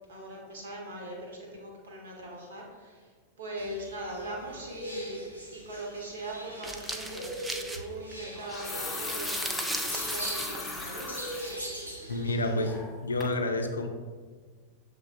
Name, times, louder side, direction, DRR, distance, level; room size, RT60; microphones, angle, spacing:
voice 1, 0.1-3.1 3.4-5.2 5.5-11.1, right 1 dB, 65° right, -1 dB, 1.1 m, -41 dB
sound 1, 3.6-12.8, equal, 85° right, 0.7 m, -41 dB
sound 2, 6.6-8.3 8.6-8.7 8.9-11.6, right 1 dB, 10° right, 0.4 m, -37 dB
sound 3, 7.1-7.3 8.3-11.6 12.0-12.1 12.6-13.0 13.2-13.3, left 2 dB, 10° left, 0.9 m, -37 dB
voice 2, 12.1-13.9, left 2 dB, 75° left, 5 dB, 0.4 m, -29 dB
6.9 x 3.2 x 2.4 m, 1.5 s
figure-of-eight pair, 90°, 0 cm